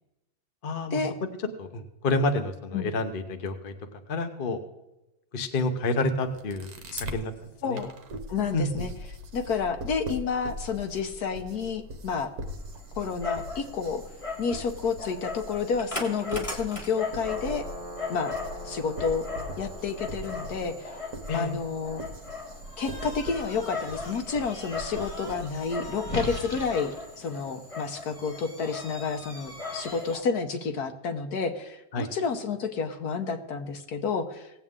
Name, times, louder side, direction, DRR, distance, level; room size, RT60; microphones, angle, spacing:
voice 1, 0.6-1.0 1.6-3.7 4.1-4.6 5.3-6.7 7.0-7.3 7.7-7.8 8.5-8.7 21.3-21.5 31.9-32.1, left 2 dB, 40° left, 6 dB, 0.8 m, -28 dB
sound 1, 6.2-7.2 7.8-25.9, right 1 dB, 55° right, 1.4 m, -41 dB
voice 2, 8.3-8.9 9.3-12.3 13.0-14.0 14.4-17.6 18.1-18.3 18.6-19.2 19.6-20.9 21.3-22.0 22.8-34.5, left 5 dB, 65° left, 6 dB, 1.3 m, -30 dB
Dog, 12.5-30.2, left 3 dB, 20° left, 1.5 m, -38 dB
18.5 x 7.9 x 3.7 m, 0.96 s
omnidirectional pair, 2.0 m